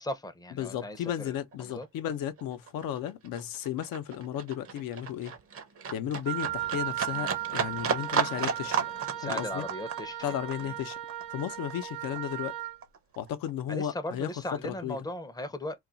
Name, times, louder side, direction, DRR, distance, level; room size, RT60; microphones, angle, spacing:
voice 1, 0.0-1.9 9.1-10.4 10.6-10.8 13.7-15.8, left 1 dB, 10° left, 0.5 m, -38 dB
voice 2, 0.6-5.3 5.9-8.8 9.2-9.7 10.2-11.0 11.3-12.5 13.2-14.3 14.6-15.0, left 10 dB, 80° left, 0.6 m, -34 dB
Livestock farm animals working animals, 1.1-1.3 1.5-12.5 12.8-13.8 14.2-14.3, right 6 dB, 45° right, 0.6 m, -34 dB
Wind instrument woodwind instrument, 6.3-12.8, right 13 dB, 90° right, 0.5 m, -36 dB
2.3 x 2.3 x 3.8 m
cardioid pair, 105°, 34 cm